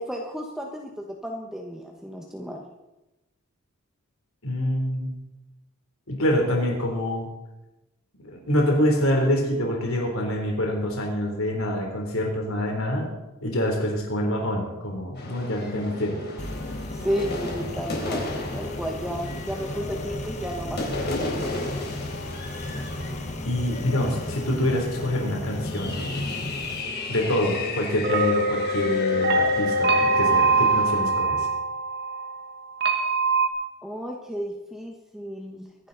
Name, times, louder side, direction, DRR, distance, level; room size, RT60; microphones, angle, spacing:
voice 1, 0.0-2.6 16.9-20.8 21.2-21.8 33.8-35.9, equal, ahead, 0 dB, 1.2 m, -33 dB
voice 2, 4.4-5.1 6.1-7.3 8.2-13.1 13.4-16.2 23.4-26.0 27.1-31.5, left 1 dB, 75° left, 1 dB, 3.4 m, -26 dB
sound 1, 15.1-31.0, left 2 dB, 55° left, 3.9 m, -35 dB
sound 2, 16.4-26.8, left 1 dB, 35° left, 1.4 m, -35 dB
sound 3, 28.0-33.5, right 2 dB, 50° right, 1.5 m, -23 dB
24.0 x 11.0 x 4.0 m, 1.0 s
head